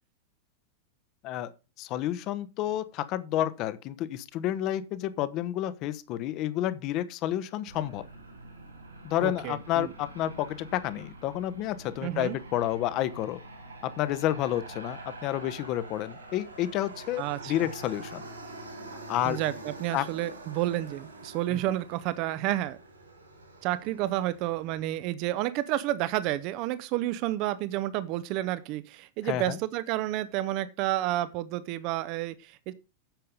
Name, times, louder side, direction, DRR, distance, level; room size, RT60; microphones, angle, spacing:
voice 1, 1.8-8.0 9.0-13.4 13.8-18.2 19.1-19.4 19.9-20.1 21.5-21.6 29.2-29.6, left 13 dB, 40° left, 0.9 m, -30 dB
Aircraft, 7.6-25.1, right 2 dB, 75° right, 4.4 m, -46 dB
voice 2, 9.2-9.9 12.0-12.4 17.2-17.7 19.2-22.8 23.6-32.7, right 14 dB, 40° right, 0.7 m, -30 dB
9.1 x 6.9 x 5.0 m
figure-of-eight pair, 90°, 0 cm